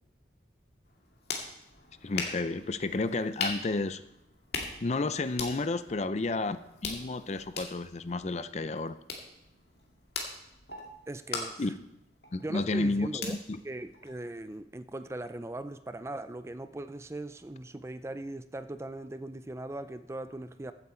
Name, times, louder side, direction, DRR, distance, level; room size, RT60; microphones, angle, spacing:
sound 1, 0.8-14.6, left 4 dB, 60° left, 2.2 m, -41 dB
voice 1, 2.0-4.0 4.8-6.6 6.8-9.0 11.6-11.7 12.3-13.2 13.5-13.6, left 3 dB, 40° left, 13 dB, 0.5 m, -31 dB
voice 2, 11.1-11.7 12.4-13.4 13.6-20.7, right 1 dB, 15° right, 11 dB, 0.4 m, -39 dB
15.5 x 8.3 x 4.4 m, 0.86 s
head